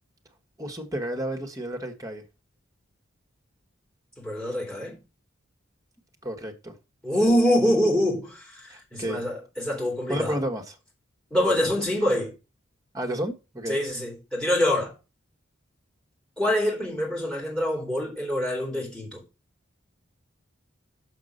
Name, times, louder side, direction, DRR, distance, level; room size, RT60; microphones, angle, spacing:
voice 1, 0.6-2.2 6.2-6.7 8.7-9.2 10.1-10.8 12.9-13.8, right 1 dB, 15° right, 1.5 m, -31 dB
voice 2, 4.2-4.9 7.0-10.4 11.3-12.3 13.7-14.9 16.4-19.2, left 1 dB, 5° left, 3.7 m, -25 dB
6.4 x 5.9 x 6.6 m
head